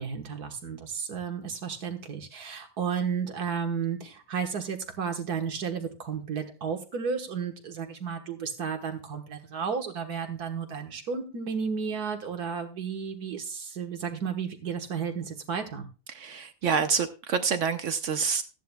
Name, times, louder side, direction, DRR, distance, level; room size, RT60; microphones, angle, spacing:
voice 1, 0.0-15.9, right 6 dB, 80° right, 1.9 m, -33 dB
voice 2, 16.1-18.4, right 6 dB, 60° right, 0.9 m, -27 dB
14.5 x 10.5 x 2.3 m
omnidirectional pair, 1.6 m